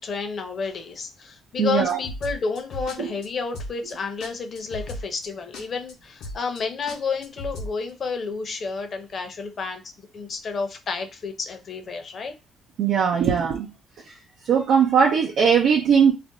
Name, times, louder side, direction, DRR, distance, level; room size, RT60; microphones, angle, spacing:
voice 1, 0.0-12.4, left 4 dB, 50° left, 0.7 m, -30 dB
voice 2, 1.6-2.0 3.0-3.1 12.8-13.7 14.4-16.1, right 7 dB, 80° right, 0.6 m, -19 dB
sound 1, 1.9-3.0 3.2-3.3 3.5-3.9 4.2-4.3 4.5-5.3 5.5-5.9 6.2-6.6 6.9-7.7, left 1 dB, 90° left, 0.8 m, -35 dB
2.5 x 2.1 x 3.8 m
cardioid pair, 90°, 0 cm